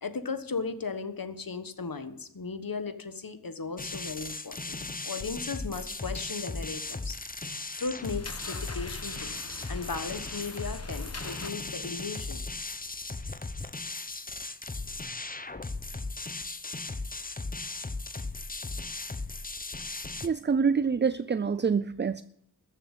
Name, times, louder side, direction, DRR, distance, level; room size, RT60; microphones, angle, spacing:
voice 1, 0.0-9.4 9.7-12.4, left 4 dB, 60° left, 10 dB, 1.3 m, -36 dB
sound 1, 3.8-20.3, left 3 dB, 20° left, 0.8 m, -37 dB
sound 2, 6.1-6.3 6.8-7.2 7.5-11.5, left 3 dB, 40° left, 1.2 m, -44 dB
voice 2, 20.2-22.2, right 5 dB, 30° right, 15 dB, 0.4 m, -26 dB
14.0 x 7.1 x 9.0 m, 0.70 s
wide cardioid pair, 65°, 38 cm